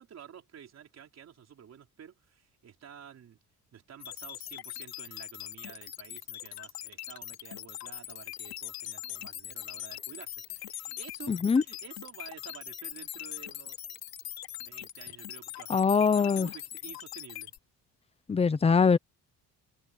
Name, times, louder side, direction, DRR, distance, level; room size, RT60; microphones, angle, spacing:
voice 1, 0.0-3.4 3.7-13.8 14.6-17.5, right 8 dB, 45° right, 4.4 m, -51 dB
sound 1, 4.0-17.6, left 13 dB, 75° left, 3.9 m, -41 dB
voice 2, 11.3-11.6 15.7-16.5 18.3-19.0, left 5 dB, 15° left, 0.7 m, -23 dB
cardioid pair, 175°, 36 cm